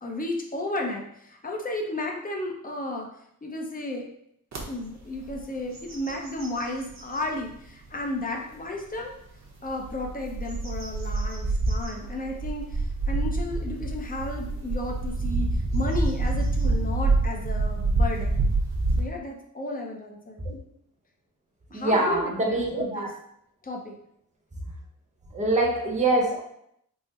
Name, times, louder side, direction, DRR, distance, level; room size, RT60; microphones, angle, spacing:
voice 1, 0.0-3.1 3.4-4.0 4.7-9.1 9.6-15.5 15.7-18.4 19.0-20.4 21.7-23.1 23.6-24.0, left 1 dB, 25° left, 1 dB, 0.6 m, -33 dB
sound 1, 4.5-4.6 5.1-5.4 5.7-7.2 7.8-7.9 9.6-19.0, right 2 dB, 50° right, 0.8 m, -27 dB
voice 2, 21.7-23.1 25.3-26.4, right 2 dB, 20° right, -2 dB, 0.8 m, -24 dB
3.7 x 2.0 x 4.1 m, 0.73 s
wide cardioid pair, 140°, 34 cm